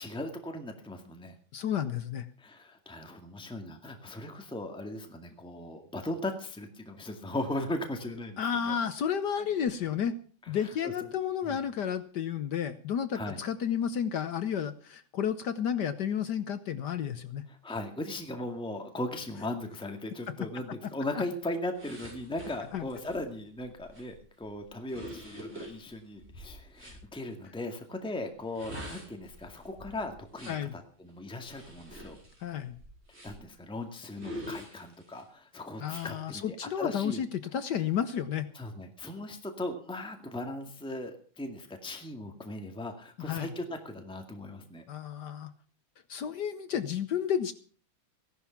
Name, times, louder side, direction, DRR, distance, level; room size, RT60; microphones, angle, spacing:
voice 1, 0.0-1.4 2.4-8.8 10.4-11.2 11.4-11.6 13.1-13.4 17.5-32.2 33.2-37.2 38.5-44.8, left 1 dB, 5° left, 5 dB, 1.9 m, -38 dB
voice 2, 1.5-2.3 8.4-10.2 10.5-17.4 22.7-22.8 30.5-30.7 32.4-32.7 35.8-38.5 43.2-43.5 44.9-45.5 46.1-47.5, left 8 dB, 60° left, 12 dB, 1.3 m, -31 dB
sound 1, 21.8-27.0 28.4-30.7 31.4-33.6 34.2-35.2 35.8-36.1, equal, 30° right, 6.6 m, -46 dB
16.5 x 11.5 x 5.9 m, 0.43 s
omnidirectional pair, 2.2 m